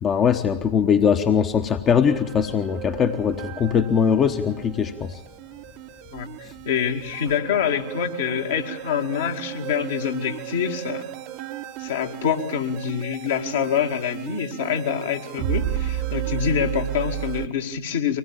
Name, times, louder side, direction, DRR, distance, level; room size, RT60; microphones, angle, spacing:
voice 1, 0.0-5.2, left 7 dB, 25° left, 7 dB, 1.0 m, -21 dB
sound 1, 2.1-17.5, right 12 dB, 45° right, 0.9 m, -33 dB
voice 2, 6.7-11.1 11.8-18.2, left 8 dB, 60° left, 3 dB, 2.1 m, -26 dB
24.0 x 19.5 x 8.9 m, 0.77 s
figure-of-eight pair, 90°, 0 cm